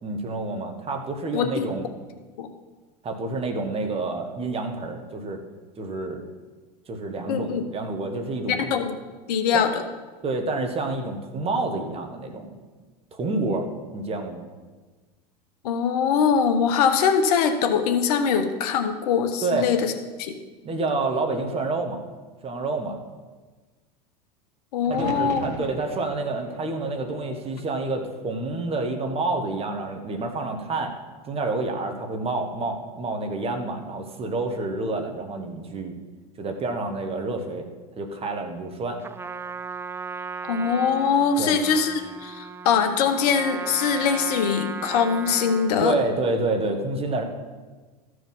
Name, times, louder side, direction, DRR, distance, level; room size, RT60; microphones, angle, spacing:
voice 1, 0.0-1.9 3.0-5.4 5.8-6.2 6.9-8.8 9.5-9.7 10.2-12.5 13.1-14.5 19.4-19.7 20.6-22.0 22.4-23.0 24.8-30.9 31.2-35.9 36.4-37.7 38.0-39.0 41.4-41.6 45.8-47.2, right 3 dB, 30° right, 4 dB, 1.6 m, -28 dB
voice 2, 1.3-1.7 2.4-2.5 7.3-7.6 8.5-9.0 9.3-9.8 15.6-19.9 20.2-20.4 24.7-25.4 40.4-45.9, left 6 dB, 65° left, 7 dB, 1.1 m, -22 dB
sound 1, 24.9-28.9 29.3-30.1 31.9-32.4, right 6 dB, 75° right, 1.1 m, -40 dB
Trumpet, 39.0-45.8, right 5 dB, 10° right, 0.4 m, -36 dB
14.0 x 4.9 x 5.6 m, 1.3 s
hypercardioid pair, 95°, 21 cm